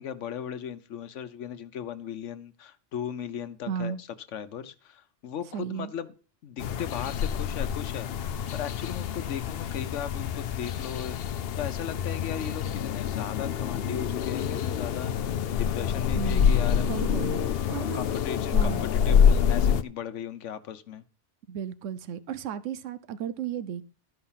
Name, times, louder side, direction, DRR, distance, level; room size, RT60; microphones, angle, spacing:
voice 1, 0.0-6.1 6.4-8.1 8.5-16.9 17.8-21.0, left 9 dB, 80° left, 1.2 m, -37 dB
voice 2, 3.7-4.0 5.5-5.9 16.1-16.5 16.9-18.0 18.5-18.9 21.5-23.8, right 8 dB, 90° right, 1.0 m, -34 dB
sound 1, 6.6-19.8, left 8 dB, 60° left, 0.8 m, -26 dB
12.5 x 5.5 x 5.6 m
omnidirectional pair, 1.2 m